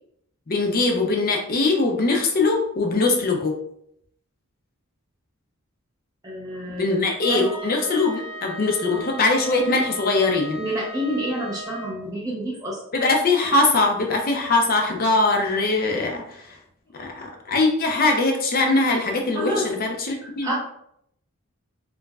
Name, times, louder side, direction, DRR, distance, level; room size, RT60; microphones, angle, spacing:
voice 1, 0.5-3.5 6.7-10.6 12.9-16.4 17.0-20.5, left 3 dB, 40° left, 2 dB, 0.6 m, -21 dB
voice 2, 6.2-6.9 7.3-7.5 8.9-9.0 10.6-12.8 19.3-19.7 20.2-20.5, equal, 15° right, -6 dB, 0.7 m, -28 dB
Wind instrument woodwind instrument, 7.2-12.0, right 2 dB, 85° left, 1.3 m, -37 dB
4.5 x 2.2 x 2.3 m, 0.72 s
head